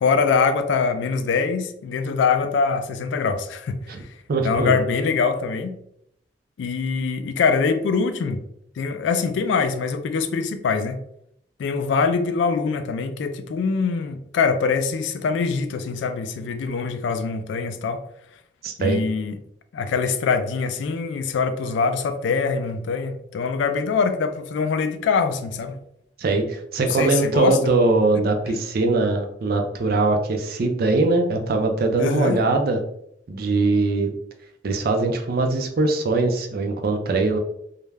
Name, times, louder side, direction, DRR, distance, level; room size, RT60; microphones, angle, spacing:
voice 1, 0.0-3.8 4.4-5.8 6.6-8.4 8.8-11.0 11.6-18.0 18.8-19.4 19.7-25.8 26.8-27.6 32.0-32.4, left 5 dB, 75° left, 9 dB, 0.3 m, -23 dB
voice 2, 4.3-4.8 18.6-19.0 26.2-32.8 33.3-34.1 34.6-37.4, right 3 dB, 55° right, 4 dB, 0.4 m, -21 dB
2.3 x 2.1 x 3.2 m, 0.73 s
head